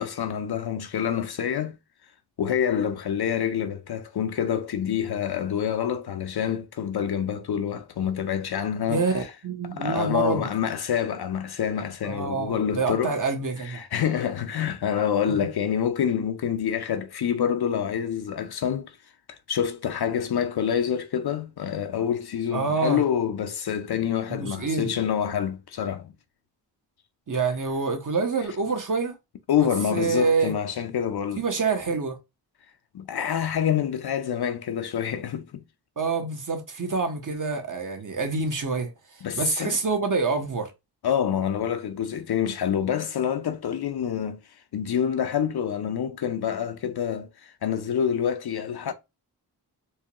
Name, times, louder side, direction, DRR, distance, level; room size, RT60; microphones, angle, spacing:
voice 1, 0.0-1.8 2.4-9.0 9.7-13.2 13.6-18.9 19.3-26.1 29.5-31.4 32.9-35.6 39.2-39.8 41.0-44.4 44.7-48.9, left 8 dB, 65° left, 0.6 m, -27 dB
voice 2, 8.9-10.4 12.0-13.8 22.5-23.0 24.3-25.0 27.3-29.2 29.6-30.5 31.4-32.2 36.0-38.9 39.3-40.7, right 4 dB, 45° right, 1.1 m, -27 dB
4.5 x 2.2 x 2.9 m
cardioid pair, 45°, 42 cm